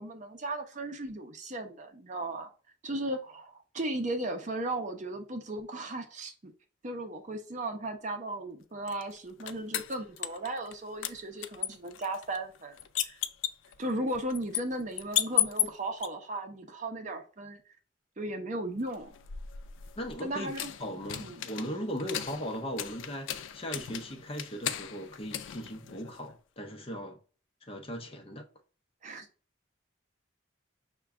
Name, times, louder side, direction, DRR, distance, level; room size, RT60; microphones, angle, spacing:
voice 1, 0.0-2.5 2.8-6.5 6.8-13.2 13.8-17.6 18.2-19.1 20.2-20.7 21.2-21.5 29.0-29.3, right 1 dB, 40° right, 0.6 m, -36 dB
sound 1, 8.9-10.8 11.0-16.1 18.9-26.4, left 12 dB, 75° left, 0.4 m, -35 dB
voice 2, 20.0-20.5 20.8-27.2 27.7-28.4, equal, 30° left, 0.6 m, -38 dB
5.8 x 2.2 x 3.5 m
head